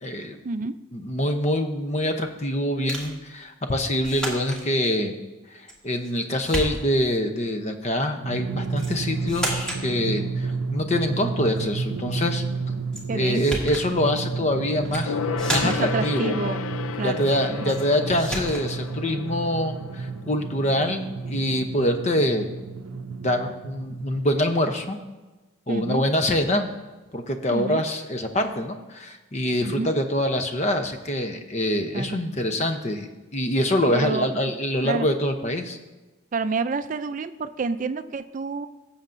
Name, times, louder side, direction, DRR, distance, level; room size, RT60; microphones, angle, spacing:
voice 1, 0.0-0.4 0.9-5.2 5.5-12.4 13.1-15.2 15.5-16.4 17.0-22.5 23.2-25.0 25.7-26.7 27.1-35.8, left 1 dB, 30° left, 6 dB, 0.7 m, -25 dB
sound 1, 2.9-3.2 4.0-4.6 5.7-6.1 6.4-7.1 8.8-9.0 9.3-9.9 12.9-13.0 13.3-13.9 14.8-15.1 15.4-16.0 17.7-17.9 18.2-18.7, right 1 dB, 5° left, 1.4 m, -31 dB
Drum, 8.2-24.4, right 4 dB, 90° right, 0.5 m, -31 dB
voice 2, 13.1-13.4 15.6-16.6 16.9-17.3 17.6-17.8 25.7-26.0 27.5-27.8 29.6-29.9 31.9-32.2 33.9-34.3 34.8-35.1 36.3-38.7, right 3 dB, 40° right, 11 dB, 0.4 m, -28 dB
Gong, 15.1-21.0 21.2-21.3, left 6 dB, 80° left, 0.4 m, -33 dB
16.5 x 7.2 x 2.6 m, 1.2 s
head